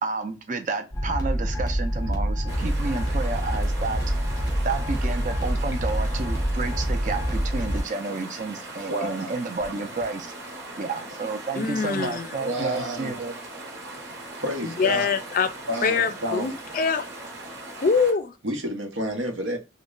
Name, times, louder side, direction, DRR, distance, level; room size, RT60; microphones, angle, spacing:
voice 1, 0.0-4.0 4.6-10.3 10.8-13.4, right 3 dB, 40° right, 0.5 m, -31 dB
sound 1, 0.9-7.8, equal, 15° left, 0.8 m, -26 dB
sound 2, 2.5-18.1, right 2 dB, 60° right, 1.0 m, -39 dB
voice 2, 8.9-9.3 12.4-13.2 14.3-15.1 15.7-16.5 18.4-19.6, right 1 dB, 90° right, 0.9 m, -29 dB
voice 3, 11.5-12.3 14.6-15.5 15.8-17.1 17.8-18.3, left 5 dB, 45° left, 0.4 m, -24 dB
3.0 x 2.2 x 3.7 m
head